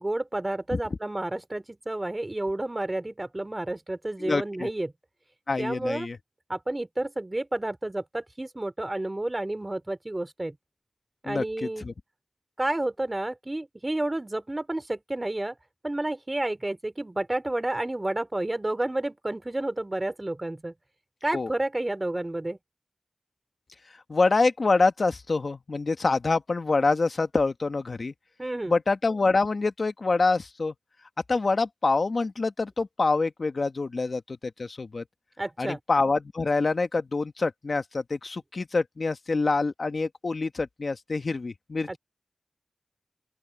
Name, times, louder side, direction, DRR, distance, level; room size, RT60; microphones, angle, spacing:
voice 1, 0.0-4.9 5.6-6.1 6.5-10.6 11.2-11.9 12.6-15.6 15.8-20.7 21.2-22.6 28.4-28.7 35.4-35.8 41.9-42.0, right 1 dB, 30° right, 3.1 m, -30 dB
voice 2, 4.2-4.7 5.5-6.2 11.2-11.9 21.3-21.5 24.1-28.1 28.7-30.7 31.3-35.0 35.6-42.0, left 3 dB, 65° left, 1.3 m, -26 dB
open air
cardioid pair, 45°, 0 cm